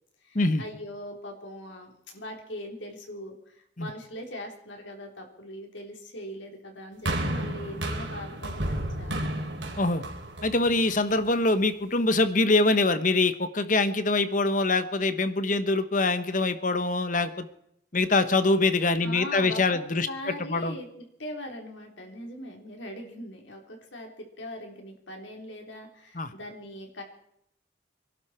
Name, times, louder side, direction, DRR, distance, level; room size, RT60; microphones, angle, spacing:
voice 1, 0.2-9.3 19.0-19.8 20.0-27.0, left 1 dB, 80° left, 2 dB, 4.0 m, -41 dB
sound 1, 7.1-11.4 12.2-12.3, right 1 dB, 75° right, 3.5 m, -32 dB
voice 2, 10.4-17.5 17.9-20.7 26.1-26.3, left 2 dB, 45° left, 11 dB, 1.2 m, -24 dB
25.0 x 12.0 x 4.5 m, 0.75 s
head